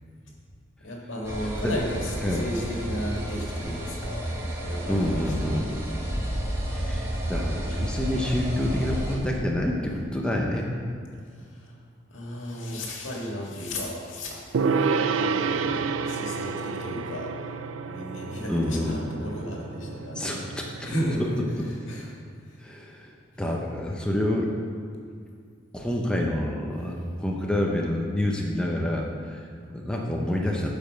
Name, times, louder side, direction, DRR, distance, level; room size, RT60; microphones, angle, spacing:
voice 1, 0.8-4.3 4.5-5.0 5.4-5.9 11.3-11.8 12.1-17.6 17.8-22.2 22.4-22.6, equal, 80° left, -2 dB, 1.9 m, -34 dB
sound 1, 1.2-9.2, right 1 dB, 15° right, 1.4 m, -31 dB
voice 2, 4.9-5.8 6.7-10.7 18.5-19.0 20.2-20.7 22.6-24.5 25.7-30.7, left 1 dB, 5° left, -1 dB, 0.7 m, -28 dB
Gong, 14.5-22.0, right 5 dB, 85° right, 0.4 m, -30 dB
12.5 x 5.3 x 5.1 m, 2.2 s
head